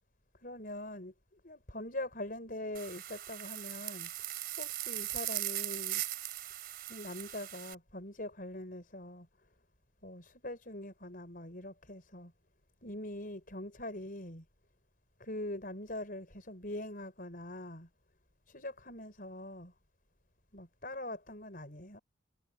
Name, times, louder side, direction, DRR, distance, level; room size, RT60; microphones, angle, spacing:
voice 1, 0.4-4.3 4.6-6.0 6.9-9.3 10.0-12.3 12.8-14.5 15.2-17.9 18.5-19.7 20.5-22.0, left 1 dB, 45° left, 5.5 m, -43 dB
sound 1, 2.7-7.7, right 14 dB, 50° right, 3.9 m, -39 dB
head